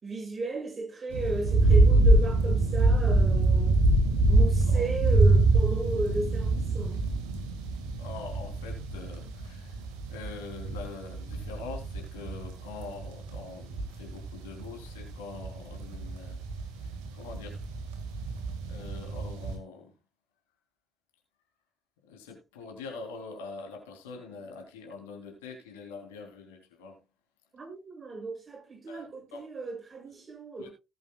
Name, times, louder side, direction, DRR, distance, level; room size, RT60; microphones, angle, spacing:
voice 1, 0.0-3.7 4.3-7.0 27.5-30.7, right 2 dB, 35° right, 6.9 m, -34 dB
thunder rain wind cut, 1.1-19.6, right 2 dB, 70° right, 2.0 m, -25 dB
voice 2, 8.0-9.8 10.1-16.4 16.8-17.6 18.7-19.9 22.0-27.0 28.9-29.5 30.6-30.7, left 4 dB, 75° left, 3.4 m, -44 dB
18.5 x 8.0 x 2.3 m
figure-of-eight pair, 40°, 0 cm